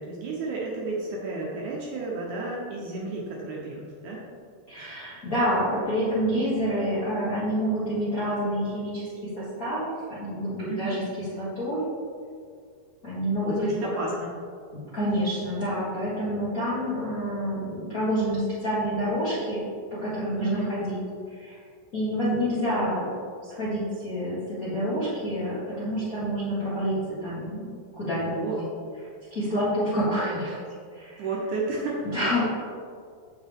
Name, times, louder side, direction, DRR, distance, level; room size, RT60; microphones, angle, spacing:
voice 1, 0.0-4.2 10.7-11.0 13.4-14.3 20.4-20.7 28.3-28.6 31.2-32.4, right 3 dB, 70° right, -3 dB, 2.1 m, -32 dB
voice 2, 4.7-9.1 9.4-11.8 13.0-13.7 14.9-19.6 20.0-21.0 21.3-21.6 21.9-23.1 23.4-27.0 27.2-28.4 29.3-30.6 30.9-31.3 32.1-32.4, equal, 40° left, -11 dB, 1.3 m, -28 dB
7.7 x 7.0 x 3.5 m, 2.2 s
omnidirectional pair, 4.2 m